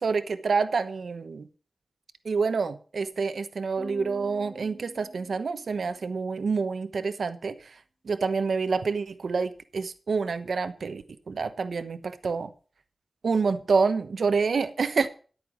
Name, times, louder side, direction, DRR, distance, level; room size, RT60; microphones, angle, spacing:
voice 1, 0.0-1.5 2.2-7.5 8.0-12.5 13.2-15.1, right 4 dB, 90° right, 1.0 m, -27 dB
sound 1, 3.8-6.2, left 1 dB, 25° left, 4.2 m, -46 dB
11.5 x 8.6 x 6.2 m
wide cardioid pair, 70°, 0 cm